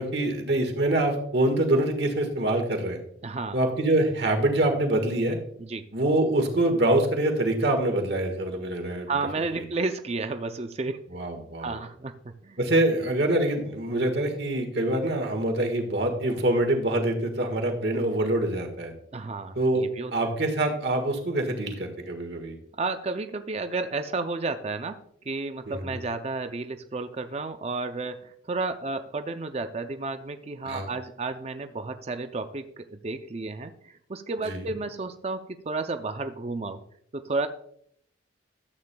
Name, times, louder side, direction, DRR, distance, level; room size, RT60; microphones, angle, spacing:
voice 1, 0.0-3.0 3.5-5.4 5.9-9.1 9.5-9.6 11.1-11.8 12.6-18.9 19.5-19.8 20.1-22.6 25.7-26.0 30.7-30.9 34.4-34.7, right 1 dB, 60° right, 5 dB, 1.6 m, -25 dB
voice 2, 3.2-3.6 5.6-5.9 9.1-11.0 11.6-12.6 19.1-20.1 22.7-36.8 37.1-37.5, right 3 dB, 35° right, 8 dB, 0.4 m, -32 dB
13.0 x 8.4 x 2.2 m, 0.69 s
head